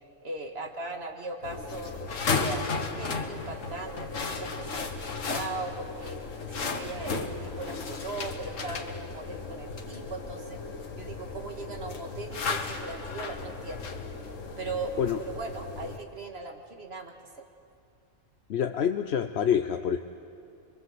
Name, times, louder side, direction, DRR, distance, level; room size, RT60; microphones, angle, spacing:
voice 1, 0.2-10.6 11.0-14.0 14.6-15.0 15.3-17.1, right 3 dB, 55° right, 4 dB, 2.1 m, -39 dB
sound 1, 1.4-16.0, left 4 dB, 75° left, 1.8 m, -35 dB
voice 2, 18.5-20.0, left 8 dB, 60° left, 8 dB, 0.9 m, -26 dB
24.0 x 23.5 x 7.9 m, 2.5 s
omnidirectional pair, 1.3 m